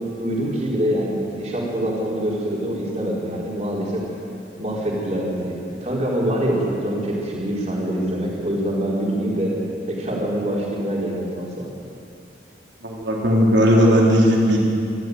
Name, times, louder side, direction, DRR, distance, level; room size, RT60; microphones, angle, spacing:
voice 1, 0.2-4.0 4.6-5.5 5.8-9.5 9.9-11.7, right 1 dB, 40° right, -4 dB, 4.2 m, -24 dB
voice 2, 12.8-14.6, equal, 90° right, -2 dB, 3.6 m, -16 dB
25.0 x 12.0 x 9.4 m, 2.7 s
head